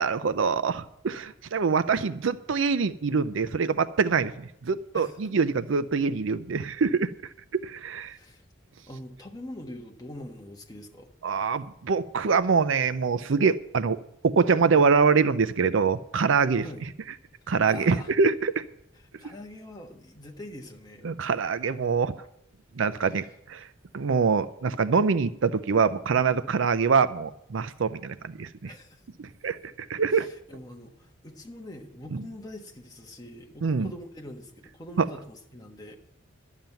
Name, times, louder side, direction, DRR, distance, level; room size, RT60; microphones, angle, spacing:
voice 1, 0.0-7.1 7.6-8.2 11.2-14.0 14.2-16.6 17.5-18.6 21.0-22.1 22.8-23.7 23.9-28.7 29.2-29.6 29.9-30.3 32.1-32.2 33.6-33.9 35.0-35.1, right 5 dB, 70° right, 14 dB, 0.5 m, -24 dB
voice 2, 4.9-5.3 8.1-8.4 8.9-11.1 16.6-16.8 17.4-18.1 19.2-21.1 23.0-23.3 28.6-29.0 30.1-35.9, left 1 dB, 20° left, 1 dB, 1.4 m, -44 dB
12.0 x 7.3 x 9.2 m, 0.76 s
head